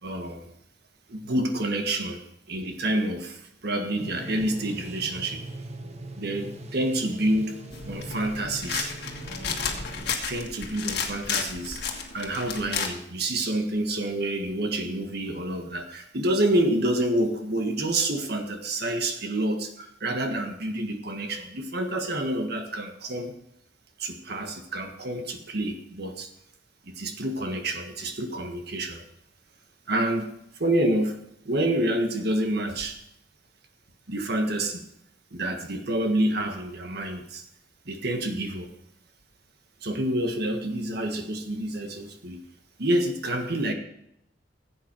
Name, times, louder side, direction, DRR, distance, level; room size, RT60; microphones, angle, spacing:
voice 1, 0.0-0.5 1.1-2.2 2.5-5.4 6.2-7.5 7.8-8.9 10.3-11.8 12.1-23.3 24.0-26.3 26.9-29.0 29.9-30.3 30.6-31.2 31.4-33.0 34.1-34.8 35.3-37.4 37.8-38.7 39.8-42.4 42.8-43.7, right 1 dB, 60° right, 5 dB, 1.6 m, -28 dB
sound 1, 4.0-10.1, right 1 dB, 35° right, 1.1 m, -40 dB
sound 2, 7.7-12.9, left 6 dB, 60° left, 1.7 m, -32 dB
15.5 x 8.3 x 4.6 m, 0.77 s
head